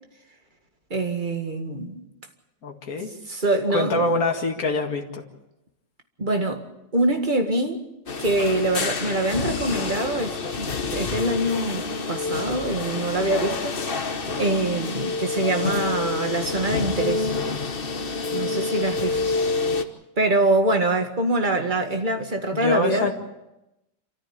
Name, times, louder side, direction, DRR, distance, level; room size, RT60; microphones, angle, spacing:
voice 1, 0.9-2.0 3.3-4.1 6.2-6.6 6.9-7.8 8.2-11.8 12.1-13.8 14.4-17.3 18.3-19.4 20.2-23.1, right 2 dB, 25° right, 2.0 m, -24 dB
voice 2, 2.6-3.1 3.7-5.2 22.5-23.1, left 2 dB, 50° left, 2.5 m, -24 dB
sound 1, 8.1-19.8, left 4 dB, 35° left, 1.1 m, -28 dB
27.0 x 14.0 x 8.7 m
omnidirectional pair, 1.9 m